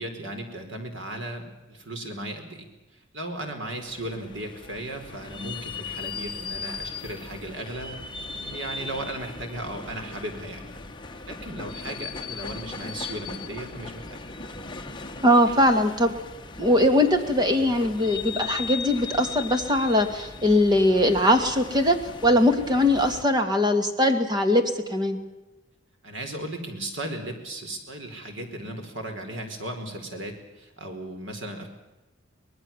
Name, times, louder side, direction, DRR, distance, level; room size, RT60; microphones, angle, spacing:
voice 1, 0.0-2.7 2.9-8.0 8.3-10.7 11.3-14.2 15.4-15.7 26.0-31.7, right 1 dB, 70° right, 5 dB, 4.8 m, -36 dB
sound 1, 3.9-23.2, left 4 dB, 25° left, 1.5 m, -38 dB
voice 2, 15.2-16.1 16.6-22.0 22.2-24.6 24.9-25.2, left 1 dB, 20° right, 7 dB, 2.3 m, -21 dB
24.5 x 19.5 x 7.4 m, 1.0 s
head